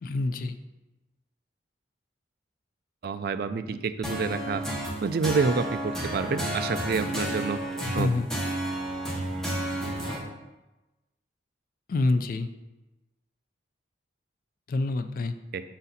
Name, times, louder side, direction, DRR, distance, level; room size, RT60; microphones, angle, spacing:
voice 1, 0.0-0.6 7.8-8.3 11.9-12.5 14.7-15.3, left 2 dB, 45° left, 9 dB, 0.3 m, -27 dB
voice 2, 3.0-4.6 5.0-7.6 7.9-8.1 15.5-15.6, right 4 dB, 55° right, 10 dB, 0.3 m, -28 dB
sound 1, 4.0-10.2, right 1 dB, 5° left, 0.9 m, -31 dB
5.9 x 4.1 x 4.1 m, 1.1 s
head